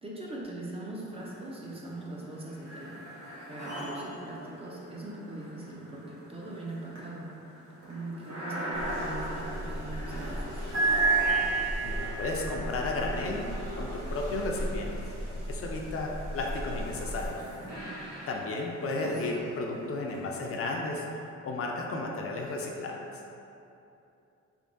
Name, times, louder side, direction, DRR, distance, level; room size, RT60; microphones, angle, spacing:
voice 1, 0.0-7.3 7.9-10.7 19.3-19.4, right 2 dB, 20° right, -4 dB, 0.5 m, -41 dB
sound 1, 1.1-1.8 2.1-15.3 16.0-20.4, right 3 dB, 60° right, 1.2 m, -35 dB
sound 2, 8.7-17.3, equal, 85° right, 1.0 m, -37 dB
voice 2, 11.8-13.5 13.7-14.9 15.5-17.4 18.3-21.1 21.4-23.1, left 2 dB, 50° left, 0 dB, 0.4 m, -33 dB
3.4 x 2.9 x 2.6 m, 2.8 s
cardioid pair, 90°, 30 cm